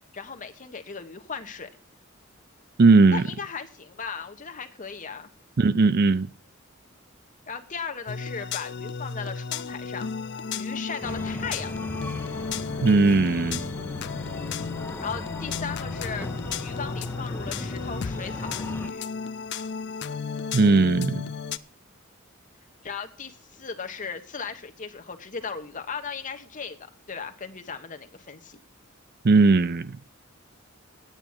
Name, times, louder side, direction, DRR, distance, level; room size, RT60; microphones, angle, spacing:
voice 1, 0.1-1.7 3.1-5.3 7.5-10.1 10.5-11.7 15.0-16.3 16.6-19.1 22.8-28.6, left 5 dB, 40° left, 1.1 m, -37 dB
voice 2, 2.8-3.2 5.6-6.3 12.8-13.7 20.5-21.2 29.2-30.0, right 3 dB, 50° right, 0.5 m, -18 dB
sound 1, 8.1-21.6, left 5 dB, 55° left, 0.5 m, -34 dB
Breathing, 11.0-18.9, left 1 dB, 10° left, 0.6 m, -37 dB
9.1 x 9.0 x 7.3 m
head